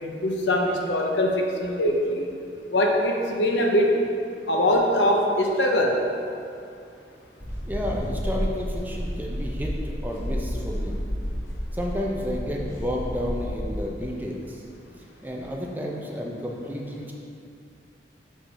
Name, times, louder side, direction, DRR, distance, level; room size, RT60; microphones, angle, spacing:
voice 1, 0.0-2.2 2.7-4.0 4.5-6.0, left 1 dB, 90° left, 1 dB, 0.9 m, -22 dB
sound 1, 7.4-13.8, equal, 15° left, 1.3 m, -31 dB
voice 2, 7.7-11.0 11.7-14.6 15.2-17.1, equal, 10° right, -2 dB, 0.6 m, -31 dB
6.7 x 5.7 x 4.2 m, 2.5 s
head